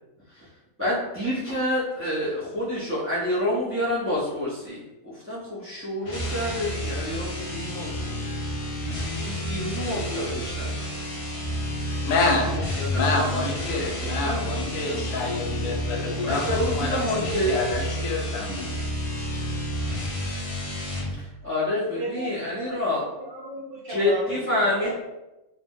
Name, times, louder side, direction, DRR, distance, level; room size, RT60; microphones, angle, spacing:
voice 1, 0.8-4.8 5.0-8.1 9.2-10.7 11.9-12.1 12.5-13.0 13.5-14.5 14.8-15.1 16.2-17.5 21.4-23.0 23.9-24.9, left 1 dB, 20° right, -7 dB, 0.3 m, -28 dB
sound 1, 6.0-21.2, equal, 45° left, 0.4 m, -30 dB
voice 2, 12.0-12.6 12.9-18.8, left 3 dB, 80° left, 2 dB, 1.0 m, -27 dB
voice 3, 21.9-24.9, right 1 dB, 60° right, -4 dB, 0.6 m, -35 dB
2.6 x 2.0 x 3.5 m, 0.98 s
omnidirectional pair, 1.4 m